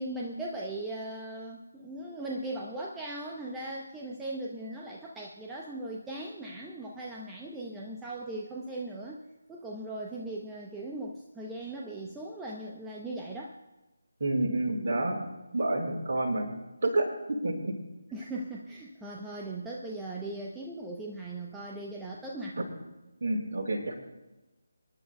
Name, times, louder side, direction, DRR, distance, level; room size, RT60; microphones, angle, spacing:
voice 1, 0.0-9.2 9.5-13.5 18.1-22.6, right 2 dB, 5° right, -3 dB, 0.7 m, -38 dB
voice 2, 14.2-15.2 15.5-16.5 16.8-17.1 17.4-17.7 23.2-24.0, right 2 dB, 45° right, -2 dB, 4.5 m, -28 dB
26.5 x 11.0 x 2.2 m, 1.1 s
figure-of-eight pair, 155°, 0 cm